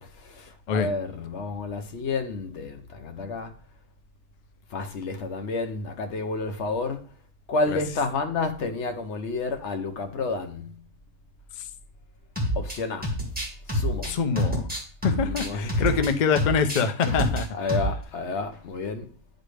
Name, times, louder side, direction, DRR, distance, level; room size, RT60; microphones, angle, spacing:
voice 1, 0.0-3.5 4.7-7.0 7.5-10.8 12.5-13.1 13.7-14.2 15.2-15.9 17.0-17.2 17.5-19.1, left 3 dB, 55° left, 1.0 m, -30 dB
sound 1, 12.4-12.8 13.0-16.1 16.4-17.4 17.7-18.0, equal, 5° right, 1.6 m, -27 dB
voice 2, 14.1-14.7 15.0-17.7, left 6 dB, 70° left, 0.4 m, -25 dB
10.0 x 4.2 x 3.3 m
omnidirectional pair, 1.6 m